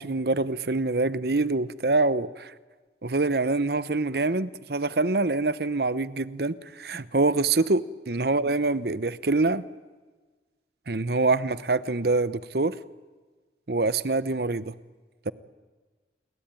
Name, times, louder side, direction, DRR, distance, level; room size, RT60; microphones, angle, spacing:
voice 1, 0.0-2.5 3.0-7.8 8.1-9.6 10.9-12.8 13.7-14.7 15.3-15.4, right 3 dB, 60° right, 16 dB, 0.9 m, -25 dB
29.5 x 22.0 x 9.2 m, 1.4 s
head